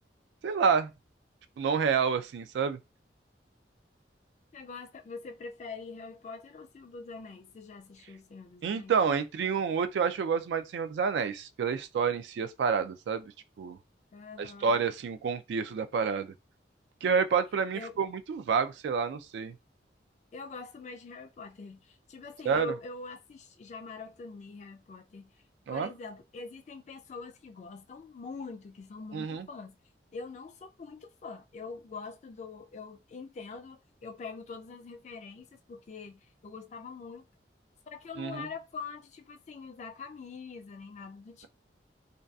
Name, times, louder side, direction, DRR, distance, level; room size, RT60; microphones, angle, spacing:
voice 1, 0.4-0.9 1.6-2.8 8.6-13.3 13.6-13.8 14.4-16.3 17.0-19.5 22.5-22.7 25.7-25.9 29.1-29.5 38.2-38.5, right 6 dB, 75° right, 0.3 m, -29 dB
voice 2, 4.5-8.9 14.1-14.8 17.7-18.0 20.3-25.3 25.7-29.8 30.1-37.3 37.9-41.5, left 4 dB, 40° left, 0.3 m, -44 dB
2.5 x 2.3 x 2.2 m
head